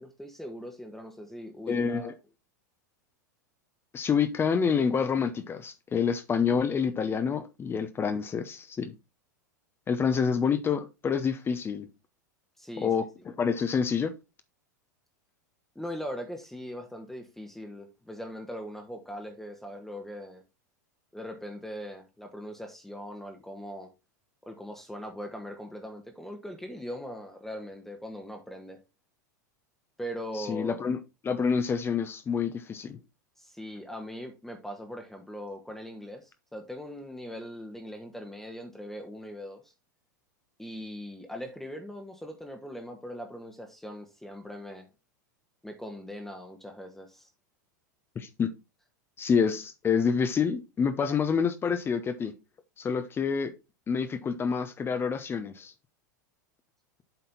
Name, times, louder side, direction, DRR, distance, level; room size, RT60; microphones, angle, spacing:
voice 1, 0.0-2.1 10.0-10.2 12.6-12.9 15.7-20.4 21.1-23.9 24.5-28.8 30.0-30.9 33.4-39.7 40.6-44.9 45.6-47.3, equal, 5° left, 1.3 m, -40 dB
voice 2, 1.7-2.1 3.9-8.9 9.9-11.9 12.8-14.1 30.4-31.0 31.2-33.0 48.2-48.5 49.2-52.3 52.8-53.5 53.9-55.7, left 6 dB, 25° left, 0.9 m, -27 dB
8.0 x 4.1 x 4.1 m
hypercardioid pair, 95°, 10 cm